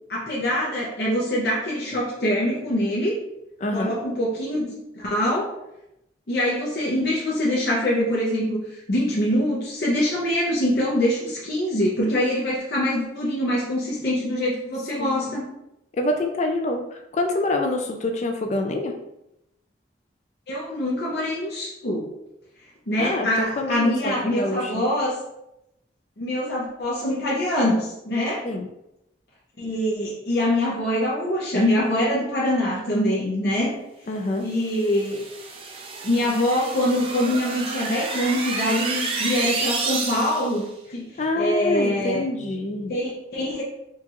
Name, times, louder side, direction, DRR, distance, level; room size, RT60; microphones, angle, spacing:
voice 1, 0.1-3.1 3.7-4.7 4.9-5.5 6.3-15.4 20.5-22.1 22.9-25.2 26.2-28.5 29.6-33.7 34.4-35.2 36.0-41.1 41.3-42.2 42.9-43.6, left 1 dB, 60° left, -5 dB, 0.7 m, -24 dB
voice 2, 3.6-4.0 15.0-15.3 15.9-19.0 23.0-24.8 28.4-28.7 34.1-34.5 41.2-42.9, left 2 dB, 40° left, 4 dB, 0.3 m, -26 dB
sound 1, 34.6-40.6, right 4 dB, 30° right, 0.4 m, -30 dB
4.4 x 2.4 x 2.9 m, 0.85 s
head